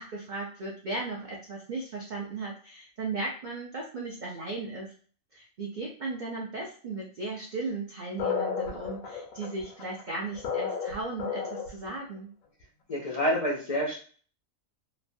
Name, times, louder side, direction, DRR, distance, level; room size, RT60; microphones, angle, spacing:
voice 1, 0.0-4.9 5.3-12.3, right 3 dB, 55° right, -2 dB, 0.5 m, -36 dB
sound 1, 8.2-11.9, left 6 dB, 85° left, 1.1 m, -32 dB
voice 2, 12.9-14.0, equal, 55° left, -4 dB, 0.4 m, -27 dB
3.1 x 2.1 x 2.6 m, 0.42 s
omnidirectional pair, 1.4 m